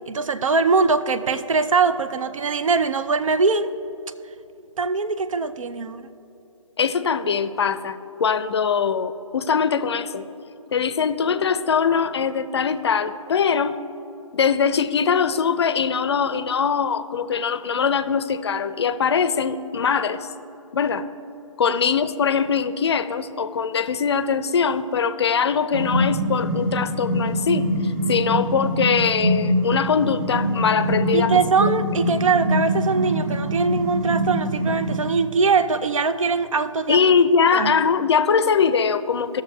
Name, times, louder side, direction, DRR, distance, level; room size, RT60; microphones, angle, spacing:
voice 1, 0.1-3.7 4.8-6.1 31.1-37.0 37.5-37.8, right 4 dB, 70° right, 11 dB, 0.4 m, -22 dB
voice 2, 6.8-10.2 10.7-13.8 14.3-20.3 20.7-21.0 21.6-31.3 36.9-39.4, left 6 dB, 50° left, 13 dB, 0.5 m, -22 dB
sound 1, 25.7-35.1, equal, 30° right, 0.9 m, -24 dB
18.5 x 6.6 x 2.3 m, 2.9 s
figure-of-eight pair, 150°, 17 cm